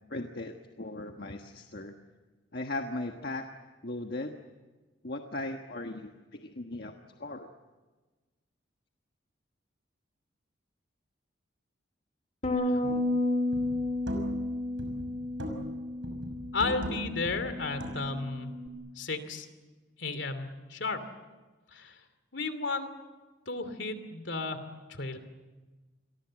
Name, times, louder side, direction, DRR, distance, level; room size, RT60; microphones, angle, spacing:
voice 1, 0.1-1.9 2.5-3.5 3.8-4.4 5.0-6.9 7.2-7.5, left 2 dB, 55° left, 4 dB, 1.4 m, -37 dB
Bass guitar, 12.4-18.7, left 2 dB, 35° left, 1.9 m, -32 dB
sound 1, 12.9-13.1 13.5-14.5 14.8-15.8 16.0-18.3, right 1 dB, 80° right, 6.1 m, -39 dB
voice 2, 16.5-18.5 18.9-19.5 20.0-21.0 21.7-22.0 22.3-22.9 23.5-25.2, left 3 dB, 70° left, 10 dB, 2.8 m, -34 dB
29.0 x 23.0 x 7.6 m, 1.3 s
head